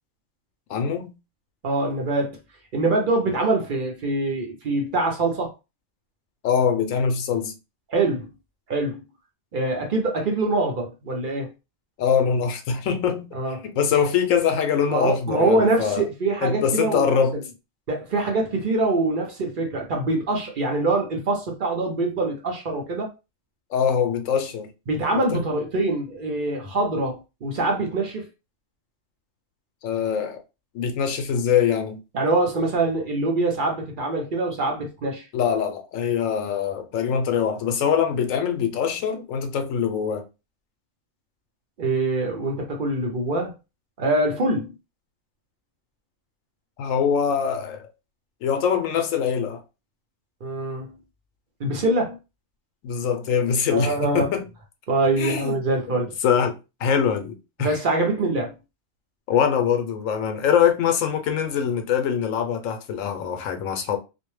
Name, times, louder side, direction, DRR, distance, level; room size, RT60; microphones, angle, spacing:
voice 1, 0.7-1.1 6.4-7.5 12.0-13.3 13.6-16.0 16.4-17.4 23.7-24.7 25.3-25.4 29.8-30.4 30.7-32.0 35.3-40.2 46.8-47.9 48.4-49.6 52.8-54.4 55.2-55.6 55.9-56.5 56.8-57.8 59.3-64.0, left 7 dB, 80° left, 1.0 m, -23 dB
voice 2, 1.6-2.4 2.7-5.5 7.9-8.3 8.7-9.0 9.5-11.5 13.3-13.7 14.9-17.4 17.9-23.1 24.9-28.3 32.1-35.3 41.8-43.5 44.0-44.7 50.4-50.9 51.6-52.2 53.7-54.3 54.9-56.1 57.6-58.5, right 2 dB, 50° right, 0.7 m, -24 dB
2.5 x 2.1 x 3.1 m
omnidirectional pair, 1.4 m